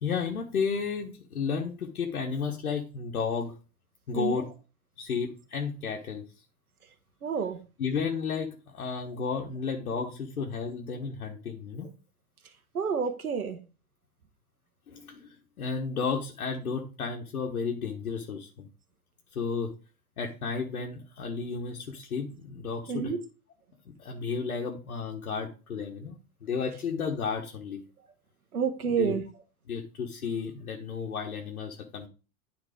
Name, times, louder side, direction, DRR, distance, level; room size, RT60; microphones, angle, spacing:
voice 1, 0.0-3.5 4.1-4.5 5.0-6.2 7.8-11.9 14.9-18.7 19.3-19.7 20.2-23.1 23.9-27.8 29.0-29.2 29.7-32.1, left 5 dB, 80° left, 0 dB, 1.4 m, -33 dB
voice 2, 4.1-4.4 7.2-7.6 12.7-13.6 22.9-23.2 28.5-29.2, right 6 dB, 85° right, 6 dB, 1.4 m, -29 dB
9.8 x 4.1 x 5.0 m, 0.33 s
hypercardioid pair, 90°, 42 cm